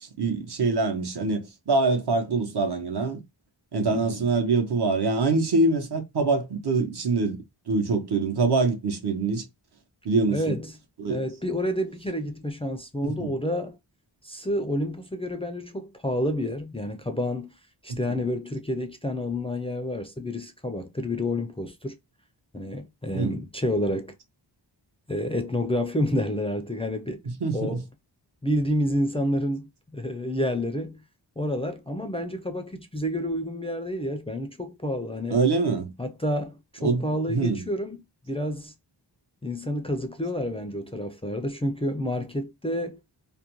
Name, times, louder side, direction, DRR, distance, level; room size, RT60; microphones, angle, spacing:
voice 1, 0.0-3.2 3.7-7.4 7.7-9.4 10.0-10.6 11.0-11.2 13.0-13.4 18.1-18.2 23.1-23.4 27.4-27.8 35.3-35.9 36.8-37.6, right 3 dB, 60° right, 0.8 m, -24 dB
voice 2, 10.3-10.7 11.1-13.8 14.2-17.5 17.8-22.0 22.5-24.1 25.1-27.2 27.5-27.8 28.4-31.0 31.4-35.4 36.0-38.0 38.3-38.7 39.4-43.0, left 1 dB, 15° left, 0.3 m, -29 dB
2.4 x 2.1 x 2.9 m
wide cardioid pair, 55°, 46 cm